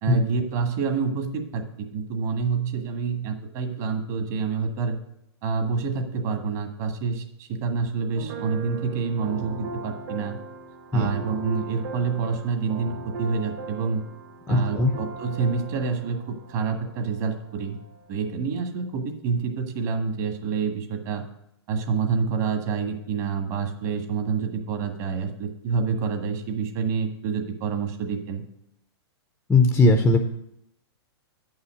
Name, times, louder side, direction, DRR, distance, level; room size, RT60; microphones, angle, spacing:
voice 1, 0.0-5.0 5.4-10.4 10.9-14.0 14.5-17.8 18.1-21.2 21.7-28.4, right 5 dB, 40° right, 6 dB, 1.6 m, -27 dB
sound 1, 8.1-18.3, right 2 dB, 60° right, 2.1 m, -38 dB
voice 2, 14.5-14.9 29.5-30.2, left 2 dB, 10° left, 6 dB, 0.5 m, -18 dB
8.6 x 5.6 x 6.3 m, 0.80 s
hypercardioid pair, 150°, 14 cm